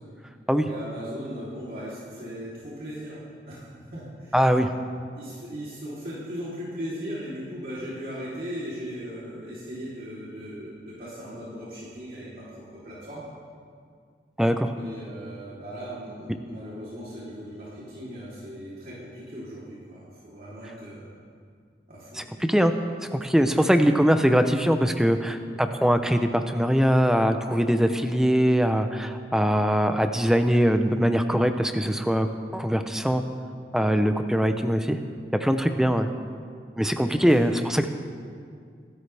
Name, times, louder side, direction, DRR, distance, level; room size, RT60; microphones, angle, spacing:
voice 1, 0.6-4.6 5.1-13.3 14.8-21.1 21.9-22.3 23.6-23.7 37.1-37.3 37.6-37.9, equal, 55° right, -9 dB, 3.3 m, -38 dB
voice 2, 4.3-4.7 14.4-14.7 22.1-22.7 23.1-32.3 32.5-33.2 33.7-35.0 35.4-36.1 36.8-37.9, equal, 5° right, 7 dB, 0.6 m, -22 dB
24.5 x 12.5 x 3.4 m, 2.2 s
head